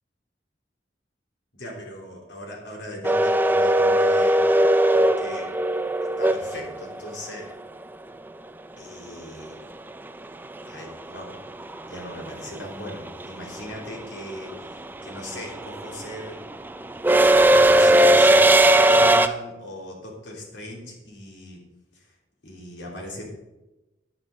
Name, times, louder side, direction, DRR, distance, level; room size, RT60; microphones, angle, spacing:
voice 1, 1.5-4.5 4.9-5.5 6.2-7.5 8.8-9.6 10.7-11.4 11.9-16.4 16.8-21.6 21.9-22.1 22.4-23.3, left 1 dB, 85° left, -1 dB, 3.3 m, -39 dB
sound 1, 3.0-7.1 9.5-9.6 10.9-11.2 11.5-19.3, right 1 dB, 10° right, 0.4 m, -18 dB
9.9 x 9.0 x 5.2 m, 1.0 s
head